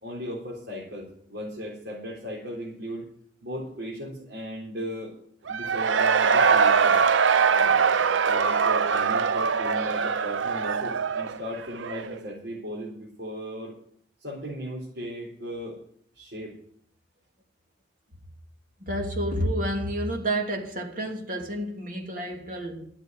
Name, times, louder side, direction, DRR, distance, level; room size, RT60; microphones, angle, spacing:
voice 1, 0.0-3.1 3.4-5.1 5.5-7.0 7.6-7.8 8.3-13.7 14.2-15.8 16.1-16.6, equal, 65° right, 4.2 m, -37 dB
Cheering / Crowd, 5.5-12.2, right 6 dB, 85° right, 0.6 m, -22 dB
voice 2, 18.8-22.9, right 1 dB, 45° right, 2.9 m, -29 dB
12.5 x 7.9 x 9.5 m
head